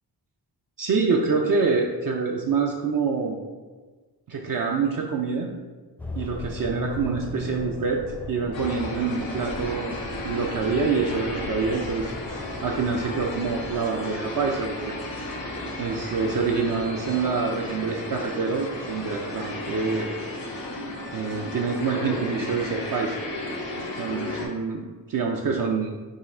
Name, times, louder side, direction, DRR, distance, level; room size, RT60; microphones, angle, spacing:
voice 1, 0.8-3.4 4.3-5.5 6.1-9.9 10.2-12.1 12.6-15.0 15.8-20.1 21.1-23.2 24.0-25.9, right 5 dB, 50° right, 1 dB, 0.5 m, -26 dB
sound 1, 6.0-13.8, left 1 dB, 5° left, 0.5 m, -37 dB
sound 2, 8.5-24.5, left 1 dB, 85° left, 0.9 m, -34 dB
3.7 x 2.3 x 4.2 m, 1.3 s
cardioid pair, 65°, 43 cm